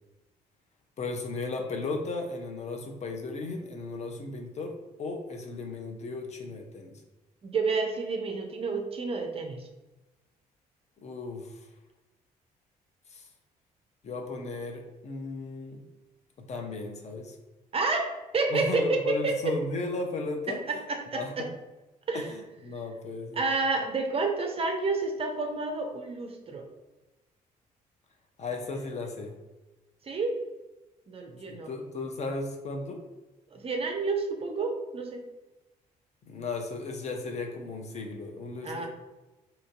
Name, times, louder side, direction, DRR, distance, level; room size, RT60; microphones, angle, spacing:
voice 1, 1.0-4.7 5.0-7.0 11.0-11.5 13.1-13.2 14.0-15.8 16.4-17.4 18.5-20.6 21.1-21.5 22.1-22.2 22.6-23.4 28.4-29.3 31.5-33.0 36.3-38.9, left 3 dB, 35° left, 3 dB, 0.5 m, -35 dB
voice 2, 7.4-9.7 17.7-19.6 20.5-21.5 22.1-22.3 23.3-26.7 30.0-30.4 31.1-31.7 33.5-35.2 38.6-38.9, right 3 dB, 30° right, 3 dB, 0.5 m, -30 dB
2.7 x 2.5 x 2.5 m, 1.1 s
figure-of-eight pair, 45°, 20 cm